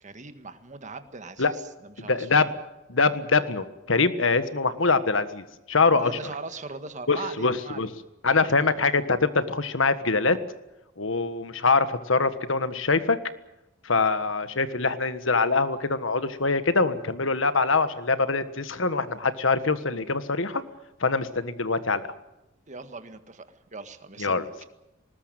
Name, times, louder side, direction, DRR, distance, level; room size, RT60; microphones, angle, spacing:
voice 1, 0.0-2.6 5.9-7.8 22.7-23.5 23.7-24.6, right 3 dB, 40° right, 9 dB, 1.6 m, -39 dB
voice 2, 2.0-2.5 2.9-6.1 7.1-7.9 8.2-10.4 11.0-13.2 13.8-20.6 21.0-22.0 24.2-24.4, left 4 dB, 75° left, 12 dB, 1.5 m, -24 dB
20.0 x 19.5 x 9.1 m, 0.93 s
head